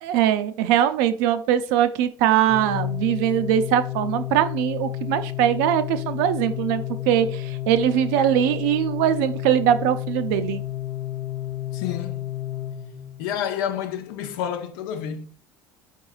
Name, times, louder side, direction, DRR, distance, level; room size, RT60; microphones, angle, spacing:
voice 1, 0.0-10.6, right 10 dB, 75° right, 0.5 m, -21 dB
Organ, 2.5-13.4, left 13 dB, 30° left, 0.3 m, -31 dB
voice 2, 11.7-12.3 13.2-15.3, left 9 dB, 80° left, 0.7 m, -29 dB
4.6 x 4.5 x 2.3 m
supercardioid pair, 85°, 11 cm